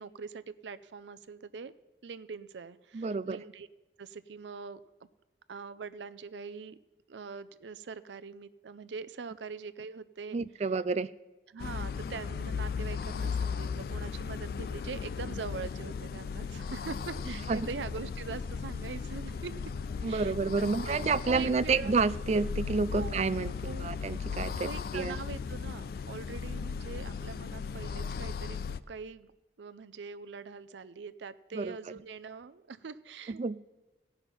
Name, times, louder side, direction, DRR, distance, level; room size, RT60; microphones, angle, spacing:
voice 1, 0.0-1.7 2.0-3.7 4.0-4.8 5.5-6.8 7.1-10.4 11.5-19.5 20.0-21.0 21.3-21.9 22.9-23.2 23.6-23.9 24.6-28.6 28.9-29.3 29.6-33.4, right 5 dB, 90° right, 15 dB, 0.5 m, -43 dB
voice 2, 2.9-3.4 10.3-11.1 17.3-17.6 20.0-25.2 31.5-31.8 33.3-33.6, right 4 dB, 35° right, 16 dB, 0.3 m, -30 dB
sound 1, 11.6-28.8, left 5 dB, 55° left, 0.3 m, -36 dB
16.5 x 5.8 x 5.5 m, 1.1 s
head